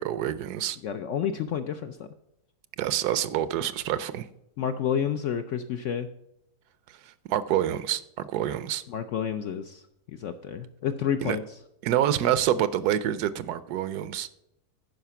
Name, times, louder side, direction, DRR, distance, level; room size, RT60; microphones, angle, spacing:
voice 1, 0.0-0.8 2.8-4.3 6.9-8.8 11.2-11.4 11.8-14.3, right 11 dB, 75° right, 1.1 m, -27 dB
voice 2, 0.8-2.1 4.6-6.1 8.9-9.8 10.2-11.4, left 8 dB, 70° left, 0.7 m, -29 dB
10.5 x 5.0 x 5.7 m
omnidirectional pair, 1.7 m